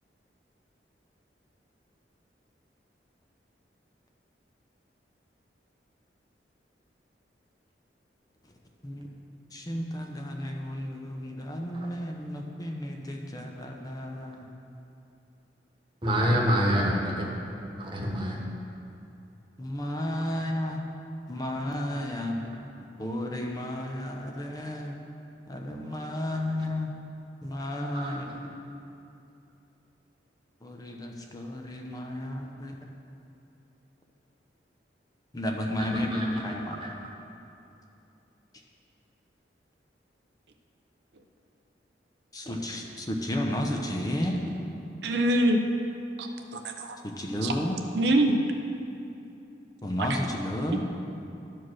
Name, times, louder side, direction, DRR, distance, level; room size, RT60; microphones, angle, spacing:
voice 1, 9.5-14.5 16.2-16.5 19.6-20.8 21.3-22.4 23.0-25.0 25.5-26.9 27.4-28.3 30.6-32.8 35.3-36.9 42.3-44.4 47.0-47.8 49.8-50.8, left 1 dB, 20° left, 1 dB, 0.7 m, -32 dB
voice 2, 16.0-17.2 17.8-18.4 27.9-28.5 35.8-36.3 36.8-36.9, equal, 30° right, -1 dB, 1.3 m, -27 dB
voice 3, 45.0-45.6 46.2-47.0 47.4-47.5 47.9-48.4, right 1 dB, 70° right, 4 dB, 0.6 m, -24 dB
11.0 x 4.7 x 6.3 m, 2.7 s
head